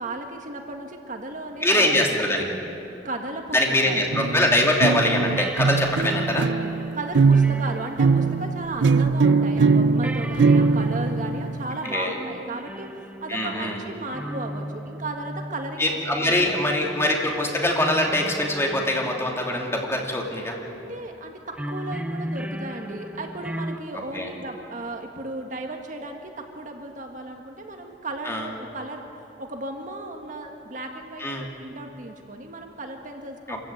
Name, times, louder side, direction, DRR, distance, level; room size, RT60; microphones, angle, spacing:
voice 1, 0.0-2.8 3.0-4.1 5.1-5.5 6.9-15.8 16.2-16.6 16.9-17.0 20.5-29.0 29.4-33.6, right 2 dB, 45° right, 3 dB, 1.8 m, -35 dB
voice 2, 1.6-2.5 3.5-6.5 11.9-12.1 13.3-13.8 15.8-20.6 24.1-24.3 28.2-28.5 31.2-31.5 33.5-33.6, left 1 dB, 15° left, 0 dB, 2.8 m, -23 dB
sound 1, 4.1-11.8, right 4 dB, 85° right, 0.5 m, -21 dB
sound 2, 5.4-9.2 9.4-9.5 10.0-20.5 21.5-23.8, equal, 10° right, 0.8 m, -37 dB
26.0 x 15.0 x 9.2 m, 2.8 s
head